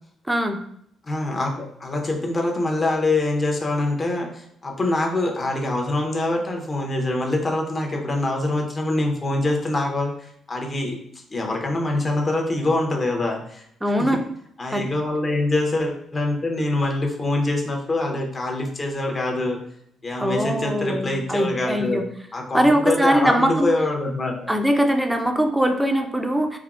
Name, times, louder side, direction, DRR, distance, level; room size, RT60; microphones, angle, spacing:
voice 1, 0.3-0.6 13.8-14.2 14.7-14.9 20.2-22.1 22.5-23.7 24.5-26.6, equal, 5° right, 4 dB, 0.4 m, -21 dB
voice 2, 1.0-11.0 11.3-13.6 14.0-14.1 14.6-19.6 20.0-22.0 22.3-24.5, left 2 dB, 35° left, 1 dB, 0.7 m, -24 dB
3.4 x 2.0 x 2.4 m, 0.71 s
cardioid pair, 90°, 0 cm